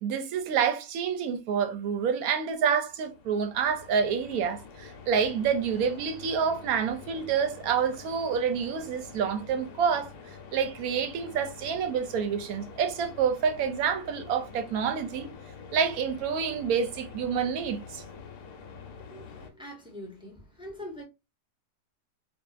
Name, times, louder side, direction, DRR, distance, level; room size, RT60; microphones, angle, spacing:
voice 1, 0.0-10.1 10.5-15.3 15.7-18.0, right 7 dB, 70° right, 1.0 m, -28 dB
sound 1, 2.8-19.5, left 5 dB, 75° left, 1.1 m, -46 dB
voice 2, 19.0-21.0, equal, 10° right, 0.3 m, -43 dB
2.6 x 2.5 x 2.3 m
omnidirectional pair, 1.7 m